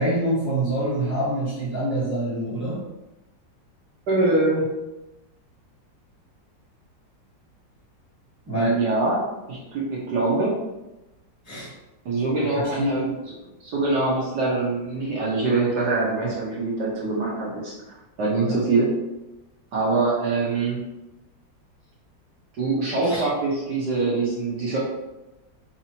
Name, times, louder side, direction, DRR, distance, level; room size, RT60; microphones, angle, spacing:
voice 1, 0.0-2.8 8.5-8.8 11.4-11.7 12.7-13.1 18.5-18.6 23.0-23.2, right 1 dB, 10° right, -9 dB, 0.8 m, -25 dB
voice 2, 4.1-4.6 8.5-10.5 12.0-13.1 13.6-18.9 19.7-20.8 22.6-24.8, right 3 dB, 65° right, -6 dB, 1.5 m, -24 dB
4.9 x 3.0 x 2.8 m, 0.99 s
omnidirectional pair, 2.0 m